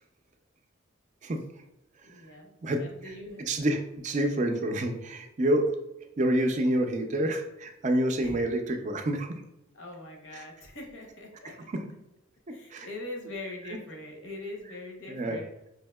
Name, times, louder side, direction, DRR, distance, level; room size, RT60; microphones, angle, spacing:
voice 1, 2.0-3.4 8.2-8.4 9.7-11.6 12.5-15.5, left 2 dB, 65° left, 1 dB, 0.8 m, -42 dB
voice 2, 2.6-3.1 3.4-5.8 6.2-9.4 10.3-10.5 11.4-11.8 12.5-12.9 13.6-13.8 15.1-15.4, right 1 dB, 35° right, 5 dB, 0.4 m, -28 dB
4.8 x 2.7 x 2.2 m, 0.94 s
head